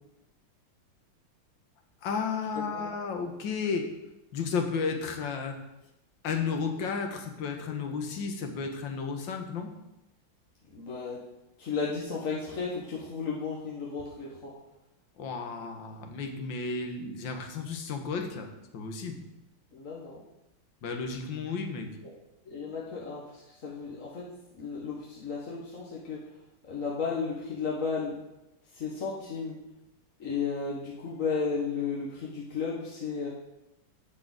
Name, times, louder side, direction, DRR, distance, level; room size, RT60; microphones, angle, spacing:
voice 1, 2.0-4.0 4.3-5.7 6.2-9.8 15.2-19.3 20.8-22.0, left 5 dB, 60° left, 4 dB, 1.9 m, -33 dB
voice 2, 2.5-2.9 10.7-11.2 11.6-14.5 19.7-20.2 22.4-24.3 24.5-26.2 26.7-28.2 28.7-29.6 30.2-33.3, left 5 dB, 40° left, -4 dB, 1.6 m, -34 dB
11.0 x 4.8 x 7.8 m, 0.92 s
omnidirectional pair, 2.3 m